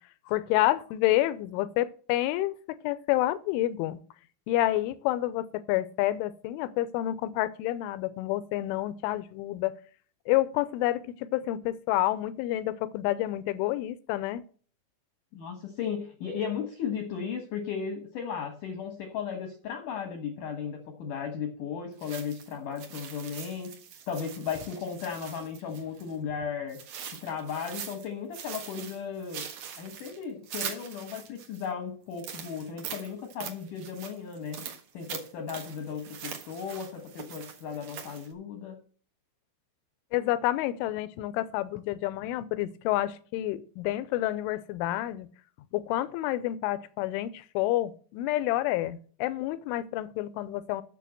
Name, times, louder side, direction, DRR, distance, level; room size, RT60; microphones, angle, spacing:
voice 1, 0.3-4.0 4.5-9.7 10.3-14.4 40.1-45.3 45.7-50.8, left 15 dB, 85° left, 15 dB, 3.1 m, -29 dB
voice 2, 15.3-23.8 24.1-26.8 27.1-29.4 29.8-34.6 34.9-38.8, left 7 dB, 70° left, 4 dB, 2.0 m, -35 dB
sound 1, 22.0-26.1 26.7-28.1 28.3-31.7 32.1-38.3, right 8 dB, 65° right, 2.3 m, -42 dB
9.3 x 6.5 x 7.6 m, 0.43 s
omnidirectional pair, 5.7 m